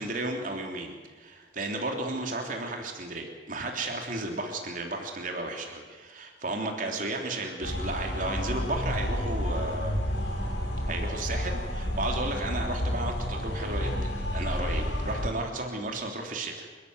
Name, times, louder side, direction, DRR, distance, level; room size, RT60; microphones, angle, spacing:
voice 1, 0.0-10.0 10.9-16.7, right 2 dB, 50° right, 2 dB, 3.4 m, -34 dB
sound 1, 7.6-15.3, equal, 75° left, 7.1 m, -30 dB
29.0 x 14.0 x 9.6 m, 1.4 s
head